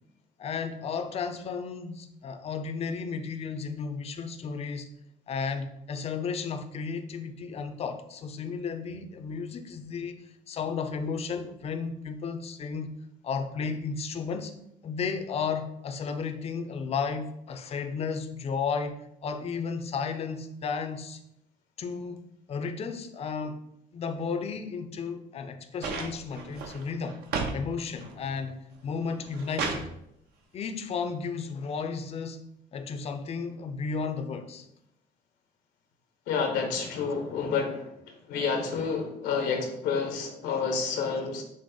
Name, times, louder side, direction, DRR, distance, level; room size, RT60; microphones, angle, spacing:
voice 1, 0.4-4.9 5.3-13.0 13.2-14.5 14.8-21.2 21.8-22.2 22.5-23.6 23.9-27.2 27.5-29.9 30.5-32.4 32.7-34.7, left 5 dB, 35° left, 0.5 m, -33 dB
sound 1, 25.8-27.6 28.0-28.5 29.0-29.9 31.1-31.2, right 4 dB, 70° right, 0.8 m, -34 dB
voice 2, 36.3-37.9 38.3-41.4, left 5 dB, 90° left, 1.0 m, -29 dB
6.1 x 2.1 x 3.8 m
cardioid pair, 110°, 17 cm